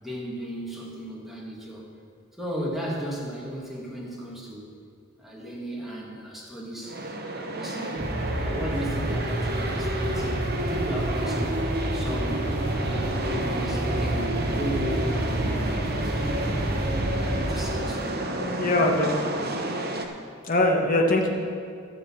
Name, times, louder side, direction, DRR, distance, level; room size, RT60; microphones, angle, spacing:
voice 1, 0.0-1.8 2.4-4.6 5.2-7.0 7.3-11.6 11.9-16.4 17.1-18.2, equal, ahead, -4 dB, 1.9 m, -35 dB
sound 1, 6.8-20.1, right 1 dB, 50° right, 1.0 m, -31 dB
sound 2, 8.0-17.6, right 1 dB, 30° right, 2.4 m, -29 dB
sound 3, 8.7-17.0, equal, 25° left, 3.1 m, -46 dB
voice 2, 18.4-19.2 19.5-19.7 20.4-21.3, left 1 dB, 40° left, 1 dB, 1.4 m, -23 dB
13.5 x 6.8 x 6.3 m, 2.2 s
head